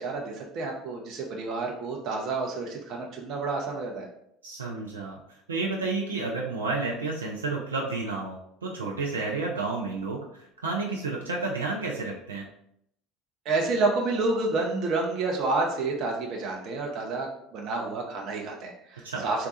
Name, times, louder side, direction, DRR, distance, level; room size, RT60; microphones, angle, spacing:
voice 1, 0.0-4.1 13.5-17.3 17.5-19.5, right 3 dB, 50° right, 0 dB, 0.7 m, -29 dB
voice 2, 4.4-5.2 5.5-12.5 19.0-19.2, right 3 dB, 85° right, -2 dB, 0.5 m, -31 dB
3.7 x 2.3 x 4.0 m, 0.73 s
hypercardioid pair, 65°, 0 cm